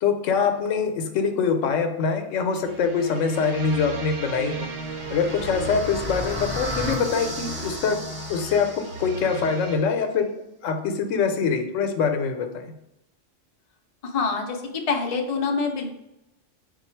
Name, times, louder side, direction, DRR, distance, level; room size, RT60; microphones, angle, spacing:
voice 1, 0.0-4.7 5.1-8.0 8.3-8.7 9.0-10.3 10.6-12.7, left 5 dB, 85° left, 6 dB, 0.9 m, -24 dB
sound 1, 2.5-9.8, right 2 dB, 80° right, 1.0 m, -35 dB
sound 2, 4.4-9.4, left 1 dB, 10° right, 0.7 m, -35 dB
voice 2, 14.0-16.0, left 4 dB, 55° left, 2 dB, 0.4 m, -26 dB
3.8 x 2.3 x 4.3 m, 0.87 s
omnidirectional pair, 1.3 m